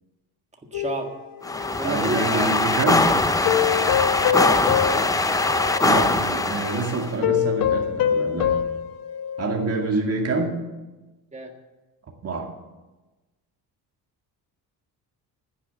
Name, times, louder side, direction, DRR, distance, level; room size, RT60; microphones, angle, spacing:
sound 1, 0.7-2.3 3.5-6.0 6.4-6.6 7.2-9.8 10.2-10.3, left 9 dB, 60° left, 1.2 m, -25 dB
voice 1, 0.7-1.1 1.8-3.2 4.9-5.1 11.3-11.5, right 2 dB, 20° right, 3 dB, 1.7 m, -31 dB
sound 2, 1.4-7.1, left 2 dB, 10° left, 0.4 m, -22 dB
voice 2, 1.8-3.1 5.8-8.6 9.4-10.6 12.2-12.5, right 3 dB, 40° right, 1 dB, 2.3 m, -26 dB
10.5 x 9.9 x 8.0 m, 1.1 s
cardioid pair, 150°, 38 cm